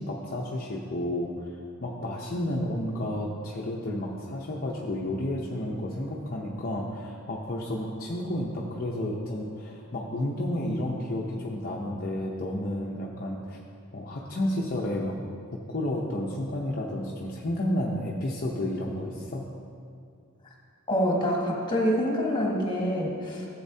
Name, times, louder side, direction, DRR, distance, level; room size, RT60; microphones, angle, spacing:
voice 1, 0.0-1.5 1.8-13.6 13.9-15.2 15.7-19.5, left 1 dB, 45° left, -3 dB, 0.7 m, -31 dB
voice 2, 20.9-23.5, equal, 20° left, -2 dB, 1.6 m, -26 dB
14.0 x 7.8 x 2.8 m, 2.4 s
head